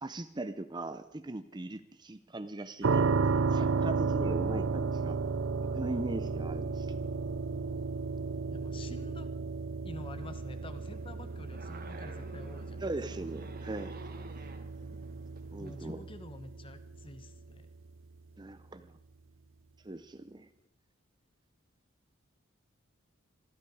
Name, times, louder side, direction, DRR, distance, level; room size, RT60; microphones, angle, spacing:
voice 1, 0.0-3.2 3.5-5.2 5.6-7.0 12.8-13.9 15.5-16.0 18.4-19.0 19.8-20.5, right 2 dB, 20° right, 11 dB, 0.6 m, -39 dB
sound 1, 2.8-17.7, right 4 dB, 65° right, 0.6 m, -33 dB
voice 2, 8.5-9.3 9.8-12.9 15.6-17.7 20.6-20.7, left 2 dB, 25° left, 10 dB, 1.2 m, -48 dB
sound 2, 10.2-15.8, right 2 dB, 45° right, 1.8 m, -51 dB
26.0 x 11.5 x 4.8 m, 0.77 s
head